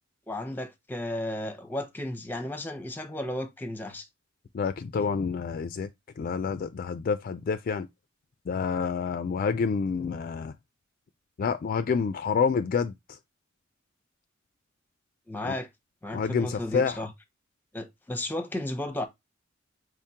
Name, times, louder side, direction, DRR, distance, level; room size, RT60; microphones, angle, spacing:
voice 1, 0.3-4.1 15.3-15.7 16.0-17.1 17.7-19.1, left 1 dB, 10° left, 0.7 m, -34 dB
voice 2, 4.5-5.9 6.2-7.9 8.5-10.5 11.4-12.9 15.4-15.5 16.1-17.0, left 5 dB, 45° left, 0.3 m, -28 dB
4.8 x 3.6 x 2.7 m
head